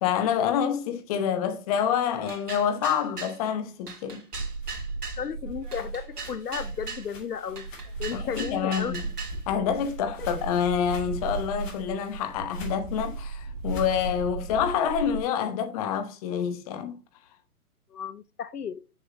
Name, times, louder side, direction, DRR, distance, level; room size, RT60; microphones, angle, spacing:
voice 1, 0.0-4.3 8.1-9.0 9.5-17.0, left 8 dB, 25° left, 1.0 m, -27 dB
sound 1, 2.3-3.4 3.9-5.2 5.7-7.1 7.6-9.4, right 4 dB, 85° right, 2.6 m, -39 dB
sound 2, 4.3-7.2 7.5-15.2, right 3 dB, 15° right, 3.7 m, -36 dB
sound 3, 4.4-8.7 9.0-14.0, left 4 dB, 55° left, 3.6 m, -51 dB
voice 2, 5.2-7.7 8.0-9.0 17.9-18.8, left 7 dB, 85° left, 0.8 m, -34 dB
7.0 x 6.8 x 2.9 m
hypercardioid pair, 140°, 45 cm